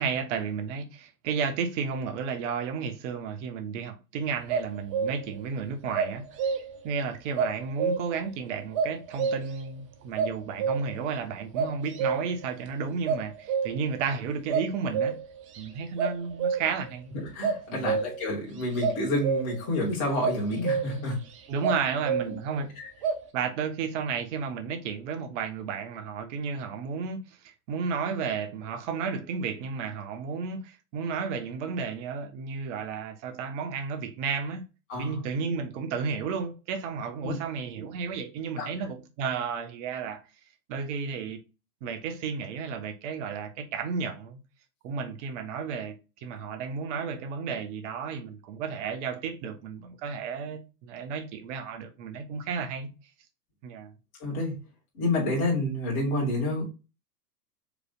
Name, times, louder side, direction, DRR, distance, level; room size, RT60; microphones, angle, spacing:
voice 1, 0.0-6.2 6.8-15.2 15.6-17.1 17.7-18.0 21.5-22.7 23.3-34.6 35.0-40.2 40.7-41.4 41.8-44.4 44.8-45.9 46.2-52.9 53.6-53.9, right 5 dB, 45° right, 1.1 m, -32 dB
sound 1, 4.5-5.4 5.9-6.9 7.4-8.3 8.7-9.7 10.2-11.1 11.5-12.5 13.0-14.0 14.5-15.6 16.0-16.9 17.4-18.3 18.8-19.7 20.2-21.1 21.6-22.6 23.0-23.2, right 6 dB, 25° right, 0.3 m, -29 dB
voice 2, 17.3-21.2 34.9-35.2 37.2-37.3 38.6-38.7 54.2-54.5 54.9-56.7, left 1 dB, 40° left, 2.3 m, -28 dB
5.0 x 3.2 x 2.4 m
hypercardioid pair, 110°, 49 cm